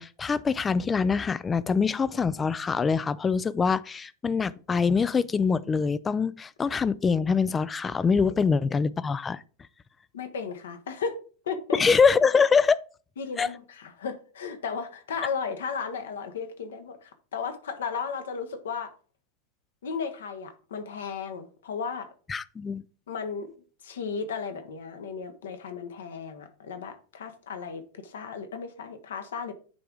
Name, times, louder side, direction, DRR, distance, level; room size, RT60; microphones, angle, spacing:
voice 1, 0.0-9.4 11.7-12.8 13.4-13.5 22.3-22.8, left 5 dB, 15° left, 0.3 m, -24 dB
voice 2, 10.1-11.2 11.5-11.8 13.2-18.9 19.8-22.1 23.1-23.5 23.8-29.5, left 5 dB, 60° left, 1.0 m, -35 dB
9.3 x 3.4 x 3.7 m
figure-of-eight pair, 90°, 0 cm